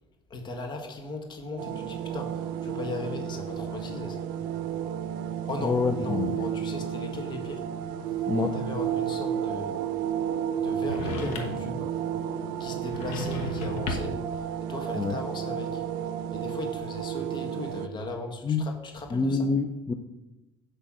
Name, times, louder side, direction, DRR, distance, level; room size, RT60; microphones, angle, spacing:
voice 1, 0.3-4.3 5.5-7.7 8.4-9.8 10.5-12.0 12.6-15.8 16.3-19.5, left 2 dB, 45° left, 3 dB, 1.5 m, -37 dB
sound 1, 1.6-17.9, right 9 dB, 90° right, 0.5 m, -32 dB
voice 2, 5.6-6.3 8.3-8.5 14.9-15.2 18.4-18.7 19.1-19.9, left 4 dB, 25° left, 6 dB, 0.5 m, -26 dB
sound 2, 10.8-11.7 12.8-14.3, left 3 dB, 70° left, 1.2 m, -34 dB
8.4 x 3.4 x 6.2 m, 1.0 s
supercardioid pair, 105°, 11 cm